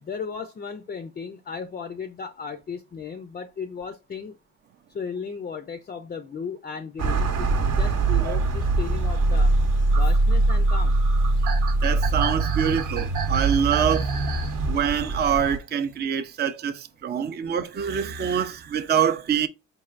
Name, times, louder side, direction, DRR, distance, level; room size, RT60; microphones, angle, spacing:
voice 1, 0.0-4.4 4.9-7.5 7.8-9.5 9.9-11.0, left 6 dB, 30° left, 0.4 m, -35 dB
sound 1, 7.0-15.6, right 2 dB, 55° right, 0.8 m, -22 dB
sound 2, 8.2-14.6 15.9-16.0, right 7 dB, 80° right, 0.9 m, -36 dB
voice 2, 11.8-14.1 14.7-19.5, right 8 dB, 35° right, 0.4 m, -25 dB
4.5 x 3.3 x 2.4 m
cardioid pair, 90°, 30 cm